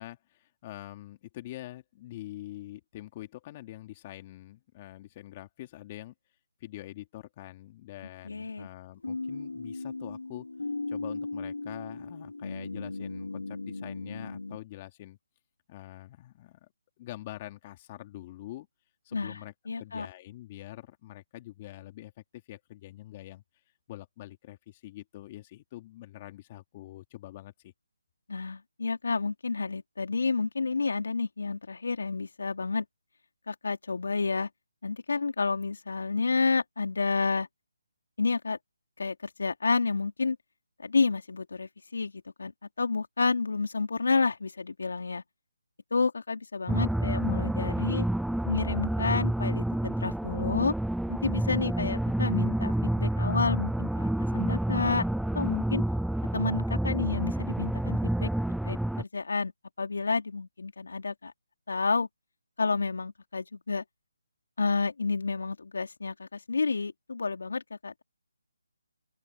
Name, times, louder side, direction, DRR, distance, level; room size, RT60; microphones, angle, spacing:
voice 1, 0.0-6.1 6.6-10.5 10.9-15.2 15.7-16.7 17.0-18.7 19.0-23.4 23.9-27.7, left 15 dB, 25° left, 2.7 m, -45 dB
voice 2, 8.2-8.7 19.1-19.4 19.7-20.1 28.3-32.9 33.5-34.5 34.8-37.5 38.2-38.6 39.0-40.4 40.8-42.5 42.8-45.2 45.9-48.1 48.4-50.7 51.1-55.1 55.3-55.8 56.3-58.3 58.6-59.5 59.8-61.3 61.7-62.1 62.6-63.8 64.6-68.0, left 4 dB, 70° left, 3.7 m, -30 dB
sound 1, 9.0-14.6, left 3 dB, 85° left, 4.5 m, -37 dB
sound 2, 46.7-59.0, right 1 dB, ahead, 0.3 m, -29 dB
open air
figure-of-eight pair, 155°, 0 cm